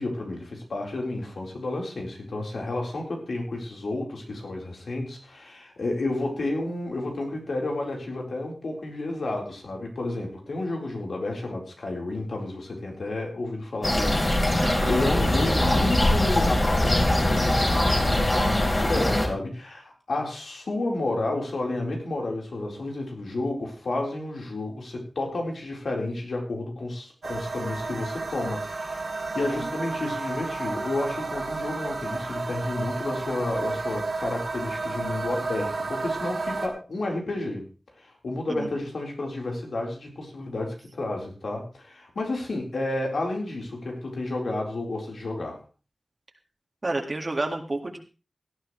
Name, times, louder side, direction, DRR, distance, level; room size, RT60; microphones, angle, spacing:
voice 1, 0.0-29.1 29.3-37.6 38.0-45.6, left 2 dB, 85° left, 0 dB, 4.2 m, -31 dB
sound 1, 13.8-19.3, left 1 dB, 30° left, 4.0 m, -22 dB
voice 2, 14.6-14.9 38.5-38.7 46.8-48.0, right 2 dB, 45° right, 2 dB, 2.0 m, -29 dB
sound 2, 27.2-36.7, right 3 dB, 75° right, 3.1 m, -32 dB
17.5 x 12.0 x 3.2 m, 0.34 s
wide cardioid pair, 70°, 0 cm